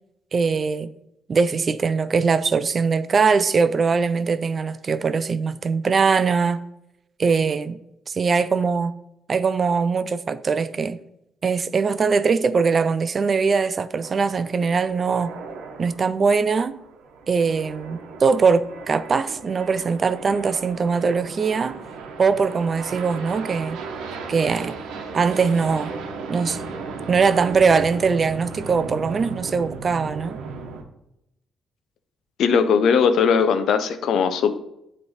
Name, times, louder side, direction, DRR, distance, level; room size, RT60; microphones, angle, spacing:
voice 1, 0.3-0.9 1.3-6.6 7.2-7.8 8.1-8.9 9.3-11.0 11.4-15.3 15.8-16.8 17.3-21.8 22.2-23.8 24.3-24.8 25.1-25.9 26.3-26.6 27.1-30.4, right 5 dB, 40° right, 0.4 m, -21 dB
sound 1, 14.0-30.8, right 4 dB, 90° right, 0.9 m, -36 dB
voice 2, 32.4-34.6, left 6 dB, 70° left, 0.6 m, -19 dB
7.9 x 3.3 x 5.6 m
cardioid pair, 90°, 0 cm